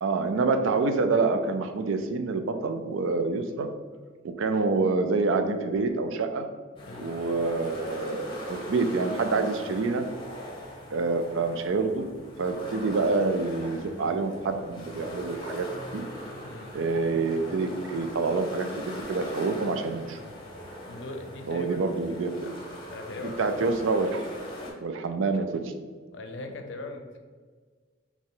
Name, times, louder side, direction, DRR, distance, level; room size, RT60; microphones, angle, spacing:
voice 1, 0.0-3.7 4.2-6.5 7.0-10.0 10.9-12.1 12.4-15.6 15.9-16.0 16.7-20.2 21.5-22.5 23.2-24.3 24.8-25.7, right 3 dB, 70° right, 7 dB, 0.4 m, -27 dB
sound 1, 6.8-24.7, equal, 25° left, 0.7 m, -40 dB
voice 2, 20.9-21.9 22.4-22.5 22.9-23.6 26.1-27.2, left 2 dB, 60° left, 5 dB, 0.5 m, -40 dB
4.3 x 2.9 x 3.8 m, 1.5 s
head